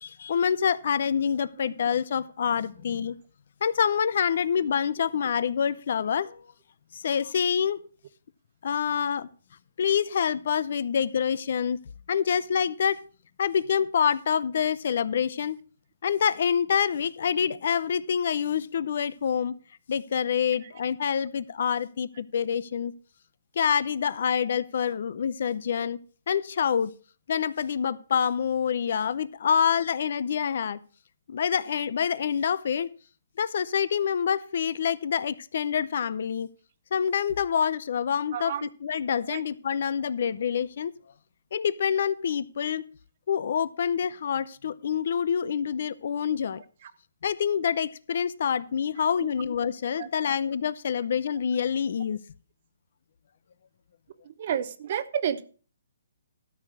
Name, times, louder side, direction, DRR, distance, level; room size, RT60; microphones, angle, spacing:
voice 1, 0.0-3.2 3.6-6.4 6.9-7.8 8.6-9.3 9.8-11.8 12.1-13.0 13.4-15.6 16.0-19.5 19.9-22.9 23.6-26.0 26.3-26.9 27.3-30.8 31.3-32.9 33.4-36.5 36.9-40.9 41.5-42.8 43.3-46.6 47.2-52.2, left 7 dB, 55° left, 0.6 m, -26 dB
voice 2, 38.3-38.7 39.3-39.4 46.8-46.9 49.2-49.3 50.0-50.1 54.2-55.4, right 9 dB, 40° right, 0.8 m, -31 dB
13.0 x 4.7 x 6.5 m
hypercardioid pair, 165°, 0 cm